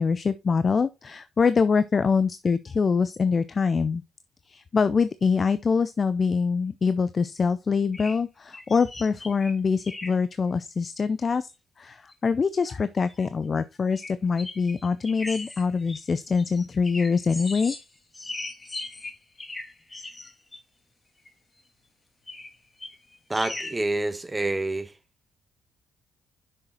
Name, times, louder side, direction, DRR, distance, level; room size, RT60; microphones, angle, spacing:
voice 1, 0.0-4.0 4.5-11.5 11.8-17.7, left 5 dB, 40° left, 0.5 m, -24 dB
sound 1, 7.9-8.2 8.5-9.5 9.8-10.2 11.3-11.4 11.9-12.1 13.1-13.2 13.9-14.1 14.4-17.9 18.1-20.6 21.3-21.4 22.3-22.6 22.8-23.8, left 2 dB, 20° left, 1.5 m, -38 dB
voice 2, 23.3-24.9, right 2 dB, 20° right, 1.1 m, -27 dB
6.4 x 5.9 x 4.3 m
cardioid pair, 90°, 0 cm